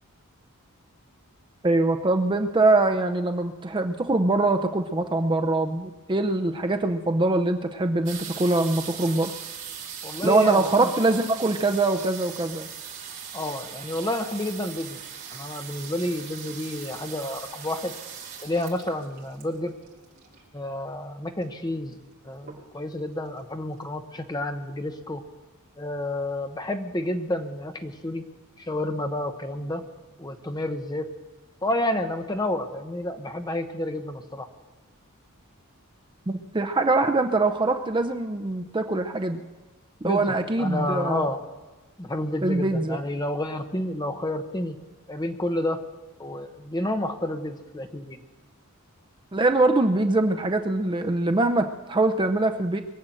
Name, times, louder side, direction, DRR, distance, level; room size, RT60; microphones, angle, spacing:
voice 1, 1.6-9.3 10.2-12.7 36.3-39.4 40.0-41.2 42.4-43.0 49.3-52.8, right 2 dB, 20° right, 6 dB, 0.6 m, -23 dB
sound 1, 8.1-20.6 21.4-21.5 21.7-22.1 22.4-23.0 23.5-23.6 23.8-23.9, right 7 dB, 45° right, 3.5 m, -40 dB
voice 2, 10.0-10.9 13.3-15.0 15.3-17.9 18.4-19.7 20.5-22.0 22.2-25.2 25.8-28.2 28.6-29.8 30.2-31.1 31.6-34.5 40.0-41.4 42.0-44.8 45.1-45.8 46.2-48.2, left 1 dB, 20° left, 6 dB, 1.1 m, -30 dB
22.5 x 7.8 x 7.7 m, 1.2 s
head